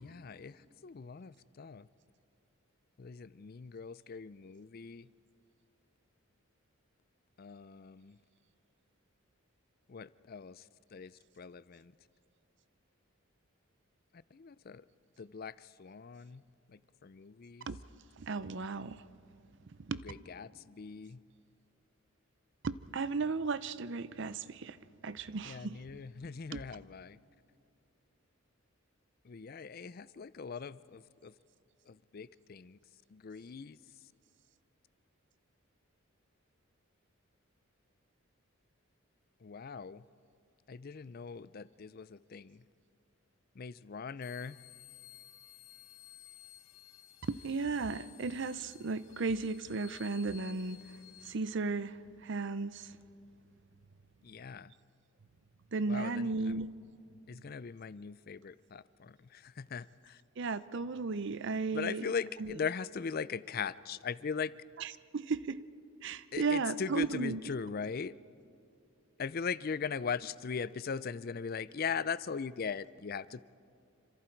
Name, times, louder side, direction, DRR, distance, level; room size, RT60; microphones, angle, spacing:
voice 1, 0.0-1.9 3.0-5.1 7.4-8.2 9.9-11.9 14.3-14.9 15.2-16.4 16.7-17.7 20.0-21.2 25.4-27.2 29.2-31.3 31.9-32.8 33.1-33.8 39.4-40.0 40.7-42.6 43.6-44.6 54.2-54.7 55.9-56.6 57.3-60.2 61.7-64.5 66.3-68.1 69.2-73.4, left 6 dB, 45° left, 0.4 m, -40 dB
voice 2, 18.2-19.1 19.8-20.1 22.6-25.8 26.5-26.6 47.3-50.8 51.2-53.0 55.7-56.7 60.4-62.1 62.4-62.6 64.8-65.6 66.0-67.4, right 4 dB, 55° right, 0.6 m, -35 dB
sound 1, 44.2-51.4, left 13 dB, 75° left, 1.7 m, -55 dB
27.5 x 25.5 x 4.6 m
head